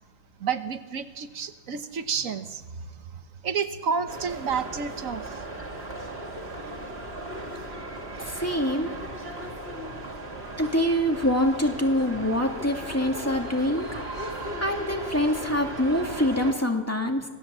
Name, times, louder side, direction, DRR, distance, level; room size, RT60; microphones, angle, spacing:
voice 1, 0.4-5.4, right 6 dB, 80° right, 9 dB, 1.5 m, -31 dB
sound 1, 4.1-16.5, right 1 dB, 50° right, 2.9 m, -36 dB
voice 2, 8.3-8.9 10.6-13.9 14.6-17.3, left 1 dB, 10° left, 2 dB, 2.3 m, -25 dB
26.5 x 17.0 x 7.6 m, 1.3 s
omnidirectional pair, 1.4 m